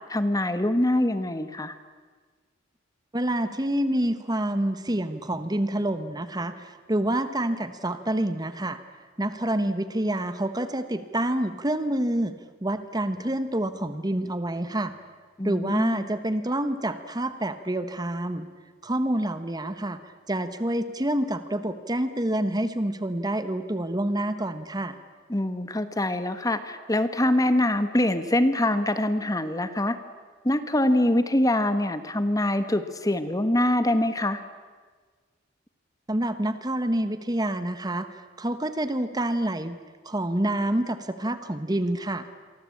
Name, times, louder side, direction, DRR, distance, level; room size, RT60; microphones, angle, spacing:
voice 1, 0.1-1.7 15.4-16.1 25.3-30.0 30.4-34.4, left 1 dB, 20° left, 10 dB, 1.3 m, -24 dB
voice 2, 3.1-8.8 9.2-12.3 12.6-14.9 15.4-18.5 18.8-20.0 20.3-25.0 36.1-39.8 40.0-42.3, right 1 dB, 20° right, 11 dB, 1.2 m, -27 dB
28.0 x 23.5 x 8.5 m, 1.5 s
head